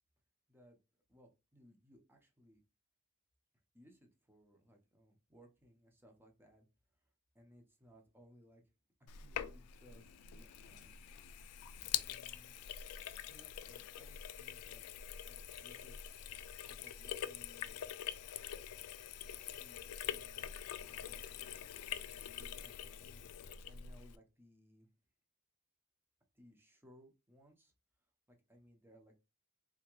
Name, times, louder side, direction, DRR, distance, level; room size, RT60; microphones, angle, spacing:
voice 1, 1.1-2.6 3.7-6.7 6.9-8.6 9.1-11.0 12.0-12.6 13.3-14.9 15.2-16.2 16.7-17.8 19.5-20.5 20.8-21.2 21.7-21.9 22.1-24.9 26.3-27.7 28.3-29.2, equal, 10° right, 2 dB, 0.7 m, -64 dB
Sink (filling or washing), 9.1-24.2, left 10 dB, 75° left, 0.3 m, -45 dB
3.5 x 2.8 x 3.0 m, 0.27 s
head